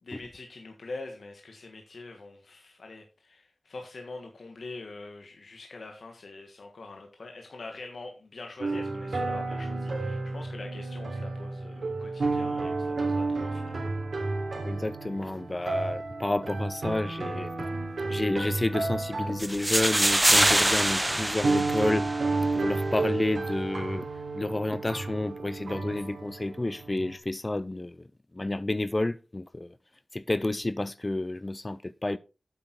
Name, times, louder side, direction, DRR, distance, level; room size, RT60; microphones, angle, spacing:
voice 1, 0.0-13.9, left 3 dB, 65° left, 1.6 m, -44 dB
sound 1, 8.6-27.2, right 3 dB, 65° right, 3.1 m, -32 dB
voice 2, 14.6-17.5 18.1-22.1 22.5-24.1 24.3-28.1 28.3-29.8 30.1-32.2, left 2 dB, 25° left, 0.4 m, -30 dB
sound 2, 19.4-22.4, right 1 dB, 15° right, 0.7 m, -24 dB
9.1 x 7.9 x 4.5 m
wide cardioid pair, 110°, 0 cm